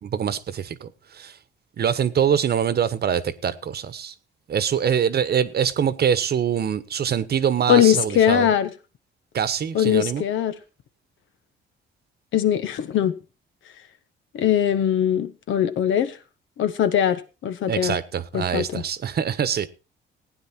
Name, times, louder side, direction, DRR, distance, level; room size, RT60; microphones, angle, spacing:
voice 1, 0.0-0.9 1.1-1.3 1.8-4.1 4.5-8.5 9.3-10.2 17.7-19.7, right 8 dB, 55° right, 1.2 m, -24 dB
voice 2, 7.7-8.7 9.7-10.5 12.3-13.1 14.3-16.2 16.6-18.0 18.3-18.8, left 10 dB, 75° left, 1.3 m, -21 dB
16.0 x 9.4 x 4.4 m
cardioid pair, 90°, 20 cm